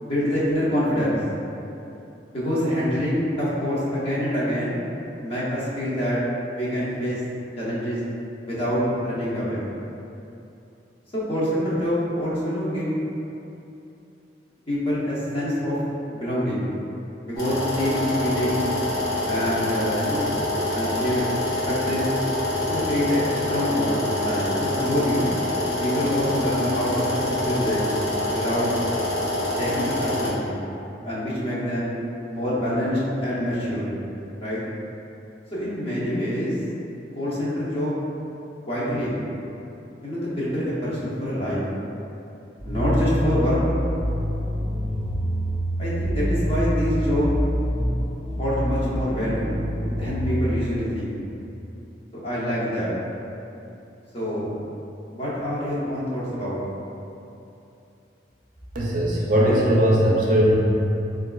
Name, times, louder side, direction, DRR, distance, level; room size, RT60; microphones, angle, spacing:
voice 1, 0.0-1.2 2.3-4.8 5.2-6.2 6.5-7.2 7.6-8.0 8.4-9.6 11.1-13.0 14.7-15.8 16.1-16.7 17.2-18.6 19.3-20.3 20.7-21.3 21.7-22.1 22.7-25.3 25.8-27.8 28.3-28.7 29.6-30.5 31.0-31.9 32.3-33.9 34.4-34.6 35.5-36.6 37.2-38.0 38.7-39.1 40.0-41.6 42.6-43.6 45.8-47.3 48.4-49.5 49.9-51.1 52.2-52.9 54.1-54.5 55.1-56.6, equal, 30° left, -9 dB, 0.7 m, -26 dB
sound 1, 17.4-30.3, left 1 dB, 75° left, 0.9 m, -26 dB
sound 2, 42.6-50.4, equal, 50° left, 1.2 m, -26 dB
voice 2, 58.7-60.5, equal, 45° right, -5 dB, 0.5 m, -19 dB
4.0 x 2.4 x 2.3 m, 2.8 s
head